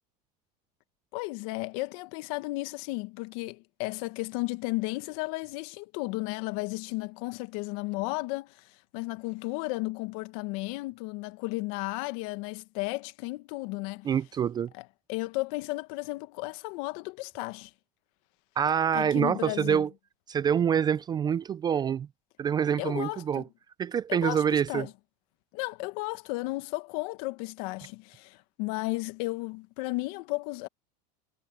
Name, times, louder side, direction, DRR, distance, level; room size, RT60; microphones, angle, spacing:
voice 1, 1.1-14.1 15.1-17.7 18.9-19.9 22.8-23.4 24.1-24.9 25.5-30.7, left 23 dB, 65° left, 1.5 m, -34 dB
voice 2, 14.0-14.7 18.6-19.9 20.3-22.1 22.4-23.4 23.8-24.9, right 8 dB, 20° right, 0.4 m, -26 dB
supercardioid pair, 135°, 21 cm